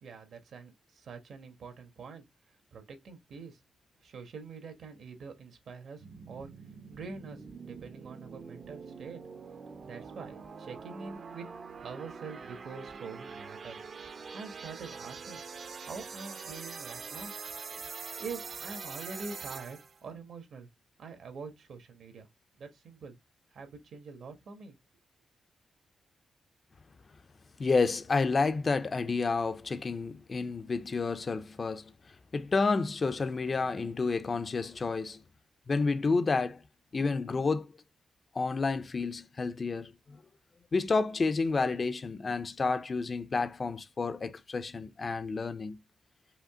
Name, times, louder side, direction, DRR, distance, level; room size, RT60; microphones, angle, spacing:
voice 1, 0.0-3.6 4.0-6.5 6.9-9.2 9.8-11.5 11.8-13.8 14.3-15.4 15.8-17.3 18.2-20.7 21.0-22.3 22.6-23.2 23.5-24.8, right 4 dB, 70° right, 1.5 m, -45 dB
sound 1, 6.0-20.0, right 5 dB, 50° right, 0.7 m, -44 dB
voice 2, 27.6-31.8 32.3-35.2 35.7-36.6 36.9-37.7 38.3-40.2 40.7-45.8, left 4 dB, 35° left, 0.4 m, -30 dB
5.0 x 2.9 x 3.6 m
wide cardioid pair, 130°, 0 cm